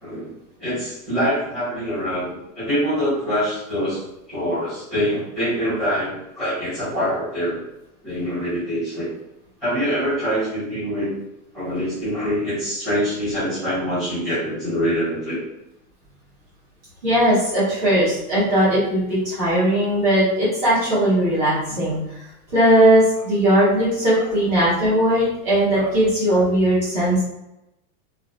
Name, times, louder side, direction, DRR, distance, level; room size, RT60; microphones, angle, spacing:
voice 1, 0.6-4.0 4.3-7.6 8.0-9.1 9.6-11.1 11.5-15.4 24.1-24.2 25.7-25.9 26.3-26.4, equal, ahead, -12 dB, 1.1 m, -24 dB
voice 2, 17.0-22.2 22.5-27.2, right 1 dB, 15° right, -10 dB, 1.0 m, -18 dB
3.0 x 2.3 x 2.5 m, 0.90 s
supercardioid pair, 180°, 45 cm